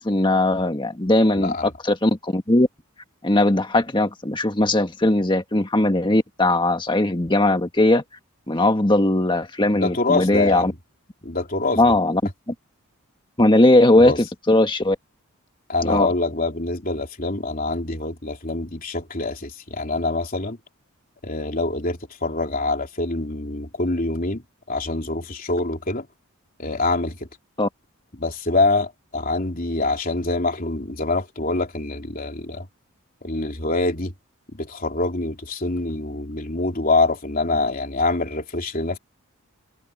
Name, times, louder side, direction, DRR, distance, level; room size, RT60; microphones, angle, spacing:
voice 1, 0.0-2.7 3.2-8.0 8.5-10.7 11.8-12.2 12.5-12.6 13.4-14.9 15.8-16.1 27.6-27.7, left 1 dB, 20° left, 1.6 m, -19 dB
voice 2, 1.3-1.7 9.7-10.8 11.2-11.9 14.0-14.2 15.7-20.6 21.2-24.4 24.7-26.1 26.6-27.2 28.2-32.7 33.2-34.1 34.5-39.0, left 2 dB, 40° left, 3.5 m, -25 dB
head